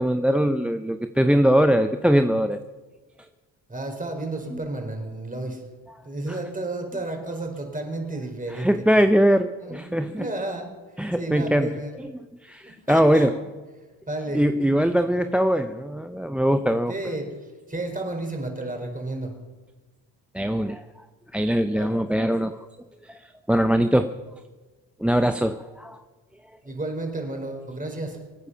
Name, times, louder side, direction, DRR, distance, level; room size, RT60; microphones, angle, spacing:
voice 1, 0.0-2.6 4.5-4.6 8.5-10.2 11.0-11.7 12.0-12.1 12.4-13.3 14.3-16.9 20.3-21.0 21.3-22.6 23.0-24.1 25.0-26.0, equal, 5° right, 9 dB, 0.7 m, -21 dB
voice 2, 3.7-5.6 6.0-8.8 9.6-11.9 12.6-13.3 14.1-14.7 16.9-19.3 21.7-22.0 26.6-28.2, right 2 dB, 20° right, 3 dB, 4.7 m, -32 dB
25.5 x 9.7 x 5.6 m, 1.3 s
supercardioid pair, 70°, 42 cm